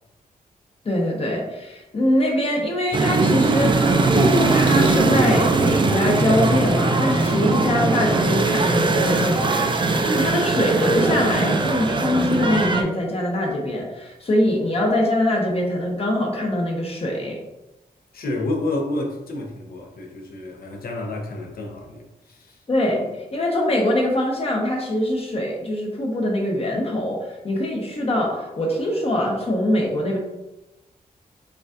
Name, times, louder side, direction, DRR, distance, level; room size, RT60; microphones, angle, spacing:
voice 1, 0.8-17.4 22.7-30.2, left 1 dB, 40° left, 0 dB, 0.8 m, -23 dB
sound 1, 2.9-12.8, right 3 dB, 30° right, 0.4 m, -20 dB
voice 2, 18.1-22.0 22.3-22.5, left 2 dB, 75° left, 1 dB, 0.7 m, -29 dB
6.7 x 2.5 x 2.4 m, 1.0 s
wide cardioid pair, 120°, 15 cm